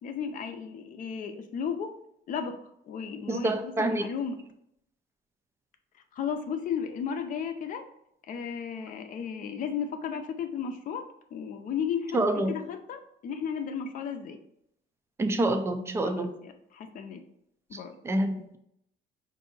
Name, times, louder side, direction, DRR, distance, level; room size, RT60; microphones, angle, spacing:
voice 1, 0.0-1.9 2.3-2.5 2.9-4.4 6.1-7.8 8.3-11.0 11.3-12.2 12.5-14.4 16.0-17.2 17.7-17.9, left 7 dB, 45° left, 6 dB, 0.6 m, -34 dB
voice 2, 3.3-4.0 12.1-12.5 15.2-16.3 18.0-18.6, right 1 dB, 15° right, 7 dB, 0.4 m, -27 dB
5.0 x 2.7 x 3.8 m, 0.75 s
cardioid pair, 140°, 18 cm